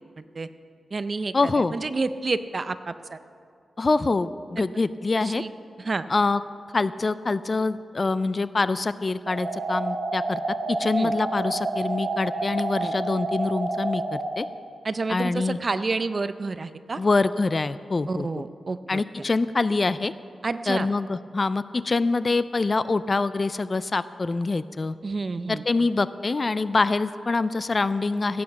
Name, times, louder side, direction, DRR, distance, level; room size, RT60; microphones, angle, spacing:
voice 1, 0.2-0.5 0.9-1.3 1.7-3.2 5.1-5.5 5.8-6.0 11.0-11.1 12.8-12.9 14.8-17.0 18.1-19.0 20.4-20.9 25.0-25.6, right 3 dB, 35° right, 12 dB, 0.5 m, -29 dB
voice 2, 1.3-1.7 3.8-5.4 6.1-6.4 6.7-10.4 10.7-14.5 15.1-15.6 17.0-18.4 18.9-20.1 20.7-25.0 25.5-28.4, left 3 dB, 30° left, 15 dB, 0.3 m, -25 dB
sound 1, 9.3-14.3, right 2 dB, 80° right, 2.1 m, -29 dB
16.0 x 8.7 x 7.0 m, 2.3 s
wide cardioid pair, 145°, 0 cm